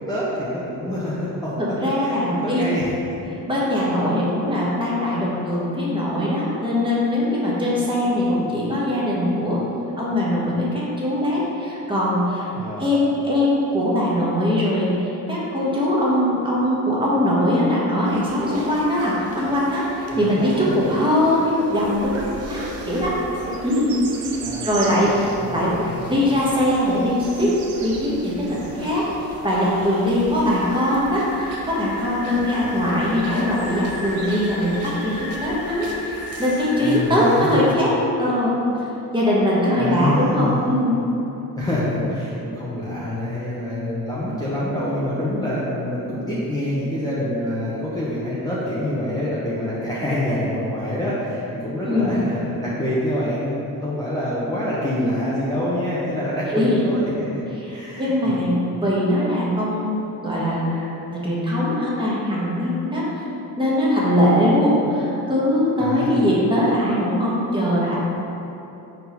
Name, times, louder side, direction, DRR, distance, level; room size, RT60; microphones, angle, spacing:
voice 1, 0.1-1.5 2.0-2.9 12.5-12.9 20.1-20.9 24.4-25.1 25.4-26.4 36.8-37.7 39.7-40.7 41.6-57.4 57.7-58.4 65.8-66.3, left 1 dB, 10° left, -9 dB, 0.8 m, -26 dB
voice 2, 1.6-2.6 3.5-9.6 10.0-12.5 12.8-22.1 22.5-23.1 23.6-24.0 24.6-25.7 26.1-27.5 27.8-29.0 29.4-37.9 38.2-38.6 39.1-41.0 51.9-52.2 56.5-56.8 58.0-63.0 63.6-68.0, left 1 dB, 15° right, -7 dB, 1.3 m, -21 dB
sound 1, 18.1-37.8, right 2 dB, 40° right, 0.7 m, -39 dB
sound 2, 21.8-36.0, right 4 dB, 75° right, 0.8 m, -40 dB
sound 3, 30.5-37.1, left 2 dB, 85° left, 1.0 m, -35 dB
4.6 x 3.9 x 5.3 m, 3.0 s
cardioid pair, 130°, 36 cm